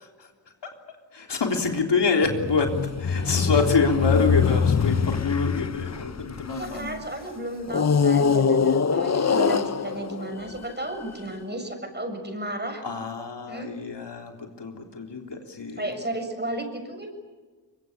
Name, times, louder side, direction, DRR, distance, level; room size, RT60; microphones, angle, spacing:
voice 1, 1.1-2.7 3.0-6.9 12.8-14.3 14.6-15.9, left 4 dB, 75° left, 3 dB, 3.8 m, -26 dB
sound 1, 2.2-6.9 7.7-11.1, left 6 dB, 40° left, 1.0 m, -24 dB
voice 2, 6.5-12.8 13.5-13.7 15.8-17.1, right 1 dB, 25° right, 5 dB, 7.1 m, -33 dB
24.0 x 23.5 x 8.7 m, 1.3 s
cardioid pair, 60°, 42 cm